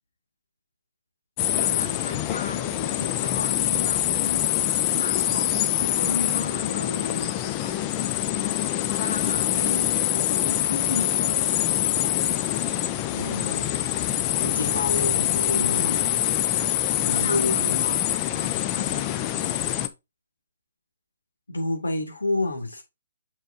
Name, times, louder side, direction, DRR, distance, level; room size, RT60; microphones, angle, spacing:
sound 1, 1.4-19.9, left 12 dB, 30° left, 0.6 m, -25 dB
voice 1, 1.5-4.5 4.9-7.9 9.0-11.6 17.1-18.0 18.2-19.3, left 3 dB, 65° left, 1.5 m, -35 dB
voice 2, 13.1-13.7 14.4-16.1 17.0-17.8 21.5-22.8, left 2 dB, 90° left, 2.5 m, -28 dB
6.6 x 6.3 x 2.8 m
figure-of-eight pair, 135°, 0 cm